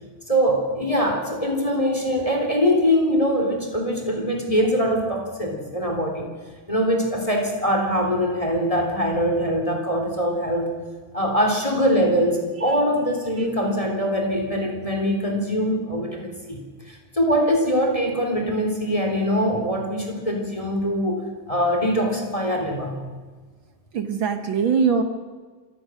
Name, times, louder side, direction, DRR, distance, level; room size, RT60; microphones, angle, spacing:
voice 1, 0.3-6.3 6.7-10.7 11.1-16.6 16.9-23.0, equal, 10° left, 2 dB, 3.1 m, -23 dB
voice 2, 23.9-25.0, right 6 dB, 55° right, 8 dB, 1.5 m, -22 dB
26.5 x 16.0 x 6.4 m, 1.5 s
omnidirectional pair, 3.4 m